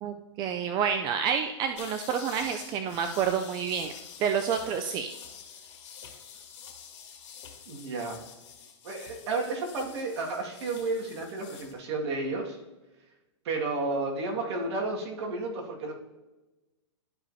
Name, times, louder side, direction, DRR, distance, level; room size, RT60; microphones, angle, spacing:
voice 1, 0.0-3.9 4.2-5.1, right 7 dB, 30° right, 6 dB, 0.5 m, -29 dB
sound 1, 1.7-11.7, left 7 dB, 65° left, 2.3 m, -47 dB
voice 2, 7.7-8.2 8.8-12.6 13.4-15.9, right 3 dB, 60° right, 0 dB, 2.0 m, -32 dB
12.5 x 4.9 x 2.8 m, 1.1 s
hypercardioid pair, 130°, 15 cm